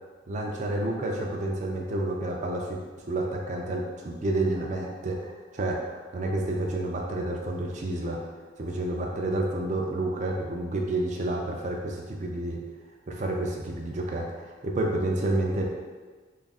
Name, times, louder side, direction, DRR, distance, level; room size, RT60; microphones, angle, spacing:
voice 1, 0.3-2.8 3.1-8.2 8.6-12.6 13.1-15.6, right 1 dB, 40° right, 0 dB, 0.4 m, -29 dB
3.3 x 2.4 x 4.0 m, 1.4 s
head